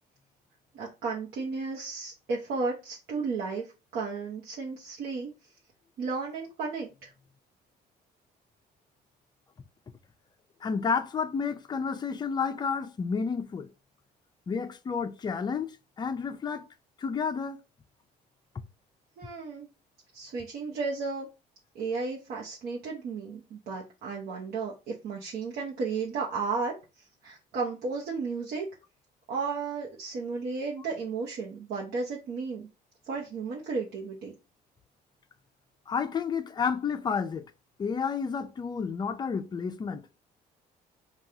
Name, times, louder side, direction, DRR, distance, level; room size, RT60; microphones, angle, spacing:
voice 1, 0.7-5.3 6.0-7.1 19.2-19.7 20.1-21.3 21.7-26.7 27.2-28.7 29.3-32.7 33.1-34.3, right 4 dB, 65° right, 0.8 m, -33 dB
voice 2, 10.6-13.7 14.5-16.7 17.0-17.6 18.5-18.6 35.9-37.5 37.8-40.1, left 5 dB, 25° left, 0.4 m, -31 dB
3.4 x 2.3 x 2.7 m
cardioid pair, 110°, 17 cm